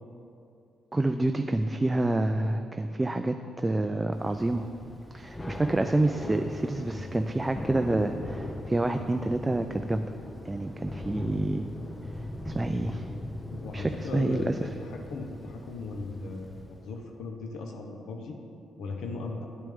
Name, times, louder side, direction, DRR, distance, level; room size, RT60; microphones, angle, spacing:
voice 1, 0.9-4.7 5.1-10.1 10.4-11.6 12.5-13.1 13.7-14.7, right 2 dB, 15° right, 7 dB, 0.3 m, -28 dB
Thunder / Rain, 4.1-17.0, left 1 dB, 15° left, 0.6 m, -39 dB
voice 2, 13.5-18.4 18.8-19.5, left 3 dB, 80° left, 2 dB, 0.8 m, -37 dB
9.1 x 8.6 x 3.5 m, 2.6 s
cardioid pair, 95°, 0 cm